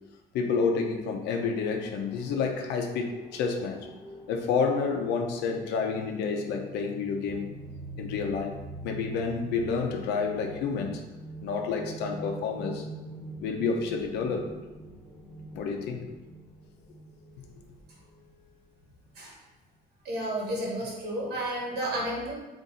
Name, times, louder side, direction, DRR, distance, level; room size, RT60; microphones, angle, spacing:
voice 1, 0.3-3.8 4.3-7.5 8.0-8.5 8.8-11.0 11.4-12.8 13.4-14.5 15.5-16.1, left 5 dB, 85° left, 3 dB, 0.7 m, -29 dB
sound 1, 1.4-18.5, right 1 dB, 35° left, 1.0 m, -44 dB
voice 2, 20.0-22.3, right 1 dB, 75° right, -3 dB, 1.4 m, -31 dB
3.9 x 2.6 x 4.0 m, 1.1 s
cardioid pair, 110°, 17 cm